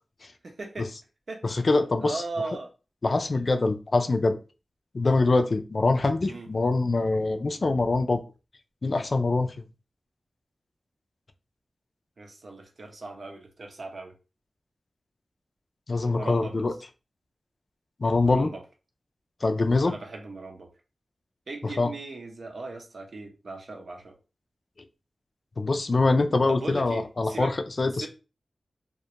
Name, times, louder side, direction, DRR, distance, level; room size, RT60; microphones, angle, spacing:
voice 1, 0.4-0.9 1.3-1.4 2.0-2.7 3.3-3.4 6.2-6.5 12.2-14.1 16.1-16.7 18.2-18.6 19.8-20.7 21.5-24.2 26.5-27.5 28.0-28.1, right 3 dB, 70° right, 0.6 m, -38 dB
voice 2, 1.4-2.2 3.0-4.4 4.9-8.2 8.8-9.5 15.9-16.7 18.0-18.5 19.4-20.0 21.8-21.9 25.6-28.1, left 3 dB, 60° left, 0.3 m, -24 dB
2.2 x 2.1 x 2.7 m
cardioid pair, 40°, 0 cm